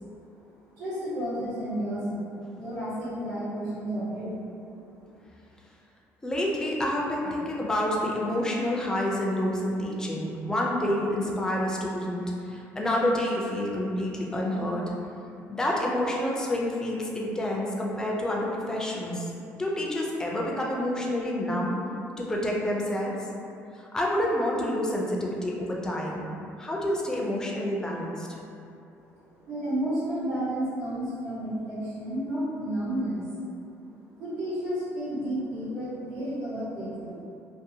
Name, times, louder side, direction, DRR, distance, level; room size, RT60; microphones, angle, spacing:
voice 1, 0.7-4.4 4.7-4.8 29.4-33.2 34.2-37.2, right 1 dB, 85° right, -14 dB, 1.1 m, -31 dB
voice 2, 6.2-14.9 15.5-19.3 19.6-21.8 22.2-23.3 23.7-26.2 26.6-28.3, left 1 dB, 10° left, -3 dB, 0.3 m, -28 dB
2.6 x 2.0 x 2.6 m, 2.6 s
cardioid pair, 135°, 6 cm